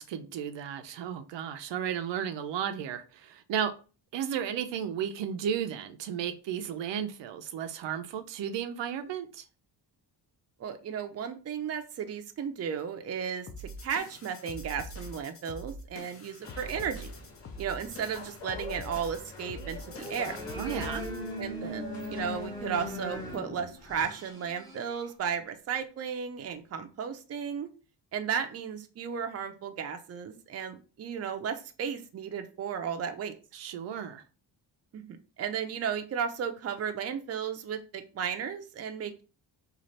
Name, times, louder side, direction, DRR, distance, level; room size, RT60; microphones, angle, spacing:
voice 1, 0.0-3.7 4.1-9.4 20.6-21.0 33.5-34.2, right 8 dB, 85° right, 0.6 m, -34 dB
voice 2, 10.6-13.5 13.8-17.1 17.6-20.4 21.4-27.7 28.1-33.3 34.9-39.2, right 7 dB, 35° right, 0.5 m, -34 dB
sound 1, 13.5-21.4, equal, 35° left, 0.6 m, -44 dB
sound 2, 16.4-23.4, left 3 dB, 80° left, 1.2 m, -46 dB
sound 3, 19.9-25.1, left 1 dB, 10° left, 0.9 m, -39 dB
3.1 x 2.4 x 4.0 m
cardioid pair, 125°, 42 cm